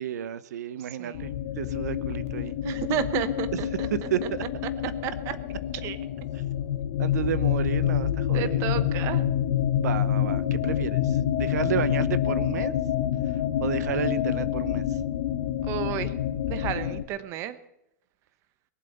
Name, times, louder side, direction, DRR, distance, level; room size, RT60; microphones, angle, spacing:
voice 1, 0.0-1.3 1.6-2.5 4.1-4.2 7.0-8.5 9.8-11.0 11.4-12.8 13.6-14.8, right 10 dB, 80° right, 16 dB, 0.8 m, -31 dB
voice 2, 1.0-1.4 2.6-4.3 5.0-6.0 8.3-9.2 15.6-16.1 16.5-17.6, right 11 dB, 30° right, 13 dB, 1.0 m, -32 dB
sound 1, 1.1-17.0, left 11 dB, 55° left, 1.3 m, -27 dB
22.0 x 7.7 x 6.7 m, 0.82 s
supercardioid pair, 165°, 9 cm